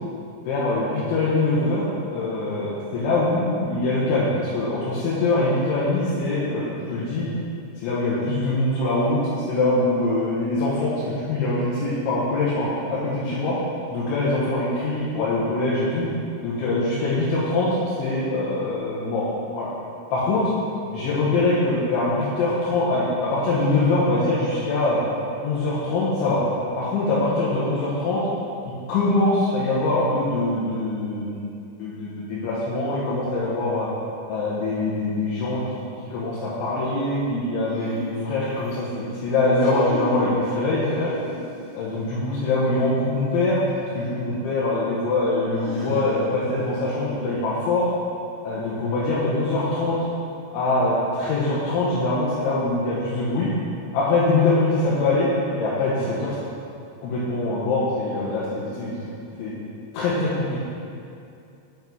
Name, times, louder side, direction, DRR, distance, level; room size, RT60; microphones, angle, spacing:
voice 1, 0.5-1.9 2.1-7.3 7.8-9.2 9.5-13.6 13.9-16.1 16.4-17.7 18.0-19.3 19.5-19.7 20.1-20.5 20.9-25.0 25.4-26.4 26.8-28.2 28.6-31.4 31.8-33.9 34.3-35.8 36.1-41.1 41.7-43.6 44.0-47.9 48.4-50.0 50.5-53.5 53.9-55.3 55.6-56.4 57.0-59.0 59.4-59.5 59.9-60.6, left 2 dB, 85° left, -8 dB, 3.5 m, -23 dB
sound 1, 37.7-38.9 39.4-40.3 40.8-41.7 43.7-43.8 45.6-46.4, left 1 dB, 60° left, 2.5 m, -35 dB
7.7 x 5.8 x 4.5 m, 2.6 s
omnidirectional pair, 5.3 m